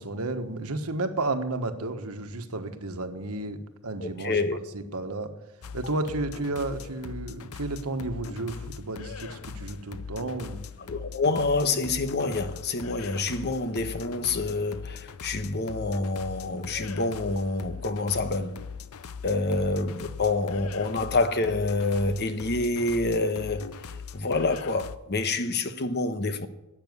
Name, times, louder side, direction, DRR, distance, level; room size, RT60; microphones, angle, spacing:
voice 1, 0.0-4.4 4.7-5.3 5.7-10.6, right 2 dB, 80° right, 1.4 m, -32 dB
voice 2, 4.0-4.6 10.8-18.6 19.2-23.7 24.1-26.5, left 3 dB, 50° left, 1.0 m, -27 dB
sound 1, 5.6-25.0, left 6 dB, 70° left, 0.6 m, -41 dB
12.5 x 8.8 x 9.6 m
head